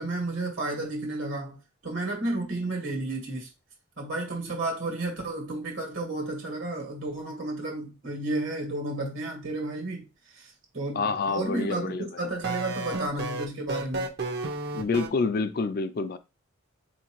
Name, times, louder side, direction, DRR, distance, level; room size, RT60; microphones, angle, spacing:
voice 1, 0.0-1.6 1.8-3.5 4.0-14.1, right 2 dB, 70° right, 1.5 m, -32 dB
voice 2, 10.9-12.1 14.7-16.2, left 4 dB, 45° left, 0.4 m, -27 dB
sound 1, 12.4-15.1, right 2 dB, 55° right, 0.7 m, -32 dB
4.2 x 2.8 x 3.0 m
head